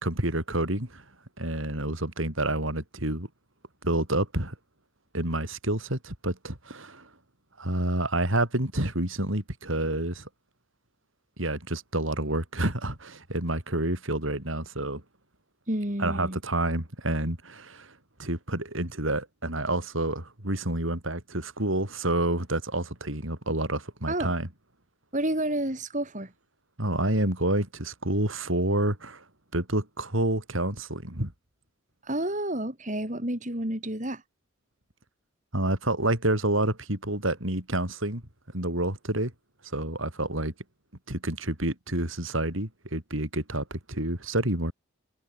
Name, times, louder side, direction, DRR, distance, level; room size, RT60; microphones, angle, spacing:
voice 1, 0.0-1.0 1.4-3.3 3.8-4.6 5.1-7.1 7.6-10.3 11.4-15.0 16.0-24.5 26.8-29.2 29.5-31.3 35.5-38.2 38.5-39.3 39.6-40.5 41.1-44.7, right 1 dB, 70° right, 5.4 m, -28 dB
voice 2, 15.7-16.4 24.1-24.3 25.1-26.3 32.0-34.2, right 1 dB, 35° right, 5.1 m, -30 dB
head